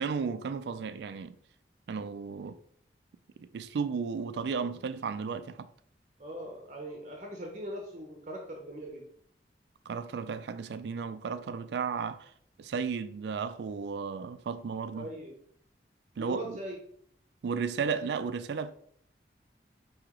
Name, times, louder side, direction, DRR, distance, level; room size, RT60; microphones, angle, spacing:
voice 1, 0.0-1.4 1.9-2.6 3.4-5.7 9.9-12.3 12.6-15.1 16.2-16.6 17.4-18.8, right 5 dB, 70° right, 0.3 m, -34 dB
voice 2, 6.2-9.1 14.9-15.3 16.2-16.8, right 1 dB, 40° right, 0.7 m, -40 dB
4.7 x 2.9 x 3.6 m
head